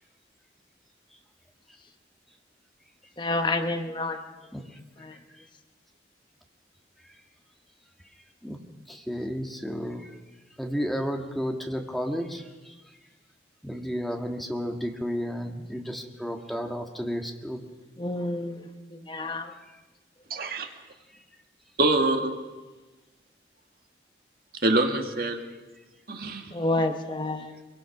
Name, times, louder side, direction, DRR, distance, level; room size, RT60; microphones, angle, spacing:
voice 1, 3.2-4.2 5.0-5.2 18.0-19.5 26.5-27.5, left 2 dB, 25° left, 6 dB, 1.1 m, -29 dB
voice 2, 8.1-8.6 8.9-10.2 10.6-13.0 13.6-17.6 19.6-19.8 21.1-21.2 27.4-27.5, equal, ahead, 2 dB, 1.7 m, -33 dB
voice 3, 20.3-20.7 21.8-22.3 24.6-25.4 26.1-26.5, right 2 dB, 55° right, 4 dB, 2.0 m, -25 dB
23.5 x 22.5 x 6.0 m, 1.2 s
head